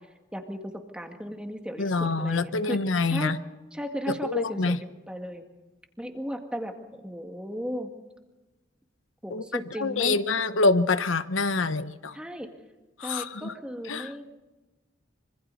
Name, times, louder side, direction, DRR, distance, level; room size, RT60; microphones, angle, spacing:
voice 1, 0.3-3.3 3.7-5.5 6.0-7.9 9.2-10.2 12.1-12.5 13.0-14.3, equal, 5° right, 4 dB, 2.0 m, -36 dB
voice 2, 1.8-3.4 4.1-4.8 9.3-9.4 9.8-12.2 13.0-13.5 13.9-14.1, left 3 dB, 85° left, 11 dB, 0.9 m, -26 dB
25.5 x 25.0 x 4.1 m, 1.1 s
head